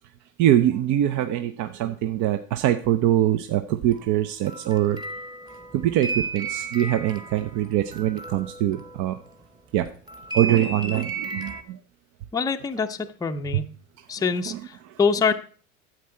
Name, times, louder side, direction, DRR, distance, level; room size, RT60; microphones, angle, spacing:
voice 1, 0.4-5.0 5.7-9.2 9.7-9.9 10.3-11.8 13.5-13.6 14.5-14.9, right 12 dB, 45° right, 9 dB, 0.7 m, -23 dB
sound 1, 3.9-9.5 10.1-11.6, right 3 dB, 10° right, 1.1 m, -34 dB
voice 2, 12.3-13.7 14.1-14.5 15.0-15.3, left 5 dB, 10° left, 5 dB, 0.6 m, -24 dB
9.3 x 7.7 x 4.4 m, 0.42 s
hypercardioid pair, 80°, 41 cm